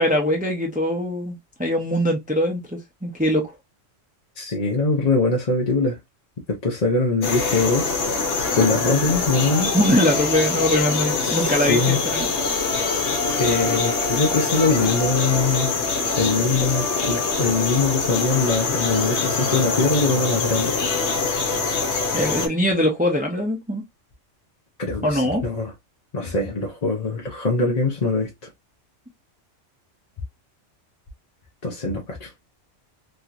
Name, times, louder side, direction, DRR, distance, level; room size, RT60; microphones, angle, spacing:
voice 1, 0.0-3.5 9.7-12.3 22.1-23.8 25.0-25.4, equal, 10° right, 0.7 m, -22 dB
voice 2, 4.4-6.0 6.5-8.0 8.5-9.7 11.2-12.0 13.4-15.7 16.2-20.8 24.8-25.7 26.1-28.5 31.6-32.3, left 3 dB, 40° left, 0.7 m, -22 dB
sound 1, 7.2-22.5, left 4 dB, 70° left, 1.1 m, -24 dB
3.1 x 2.8 x 2.5 m
omnidirectional pair, 1.3 m